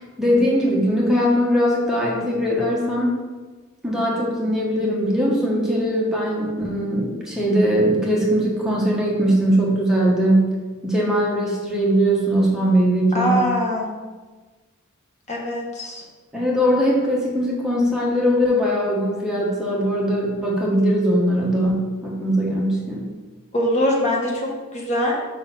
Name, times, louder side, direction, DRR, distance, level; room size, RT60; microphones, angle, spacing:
voice 1, 0.0-3.1 3.8-10.6 10.8-13.5 16.3-23.1, equal, 5° right, -4 dB, 1.0 m, -20 dB
voice 2, 13.1-13.9 15.3-16.0 23.5-25.2, equal, 35° left, -2 dB, 1.1 m, -22 dB
5.1 x 3.9 x 5.8 m, 1.3 s
head